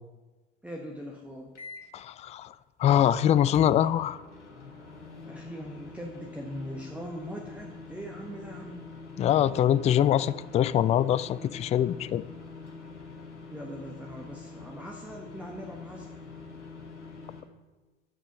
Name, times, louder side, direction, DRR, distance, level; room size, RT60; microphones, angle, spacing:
voice 1, 0.6-1.5 5.2-8.8 13.5-16.1, equal, 5° right, 0 dB, 1.2 m, -41 dB
sound 1, 1.5-2.0 3.5-17.4, left 3 dB, 85° left, 1.3 m, -45 dB
voice 2, 1.9-2.5 2.8-4.2 9.2-12.2, left 11 dB, 20° left, 15 dB, 0.3 m, -23 dB
12.0 x 5.0 x 6.0 m, 1.2 s
figure-of-eight pair, 65°, 35 cm